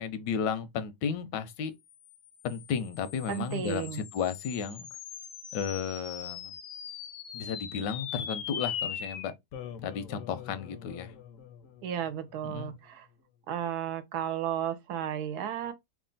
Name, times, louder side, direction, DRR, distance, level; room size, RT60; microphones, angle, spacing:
voice 1, 0.0-1.7 2.4-4.9 5.5-6.6 7.3-9.3 9.8-11.1 12.4-12.7, left 7 dB, 85° left, 1.3 m, -33 dB
sound 1, 2.0-12.7, left 8 dB, 65° left, 0.8 m, -41 dB
voice 2, 3.3-4.0 11.8-13.1 13.5-15.7, right 9 dB, 70° right, 1.1 m, -33 dB
3.2 x 2.4 x 3.8 m
omnidirectional pair, 1.9 m